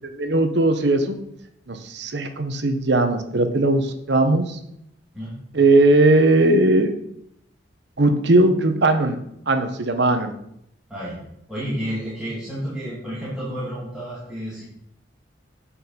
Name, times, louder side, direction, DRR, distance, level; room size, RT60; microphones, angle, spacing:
voice 1, 0.1-1.2 1.7-4.6 5.5-6.9 8.0-9.2 9.5-10.3, right 2 dB, 60° right, 7 dB, 1.0 m, -18 dB
voice 2, 11.5-14.6, equal, 5° right, -10 dB, 2.7 m, -30 dB
8.3 x 5.6 x 5.7 m, 0.75 s
head